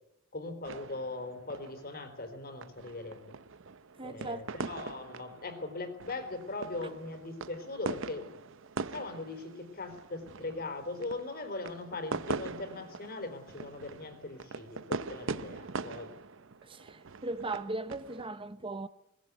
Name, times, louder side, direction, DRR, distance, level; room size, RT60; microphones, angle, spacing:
voice 1, 0.3-3.4 4.0-8.3 8.9-16.1, left 2 dB, 45° left, 3.8 m, -40 dB
sound 1, 0.6-18.3, right 4 dB, 60° right, 0.8 m, -42 dB
voice 2, 4.0-4.5 16.6-18.9, right 2 dB, 25° right, 0.8 m, -38 dB
21.0 x 19.5 x 9.5 m
head